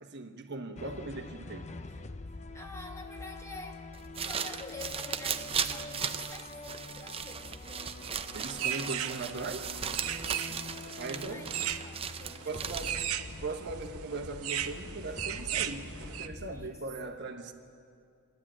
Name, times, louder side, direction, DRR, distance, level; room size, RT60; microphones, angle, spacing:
voice 1, 0.0-1.7 8.3-9.8 11.0-11.5 12.4-13.0 13.4-17.5, right 3 dB, 50° right, 1.3 m, -39 dB
sound 1, 0.8-16.8, left 2 dB, 30° left, 0.6 m, -46 dB
voice 2, 2.5-3.9 4.1-8.1 10.3-10.7 10.9-13.1 16.5-16.8, left 2 dB, 15° left, 1.3 m, -48 dB
sound 2, 3.9-13.2, right 7 dB, 25° right, 0.6 m, -37 dB
sound 3, 8.0-16.3, right 10 dB, 70° right, 0.8 m, -38 dB
27.5 x 12.0 x 8.7 m
head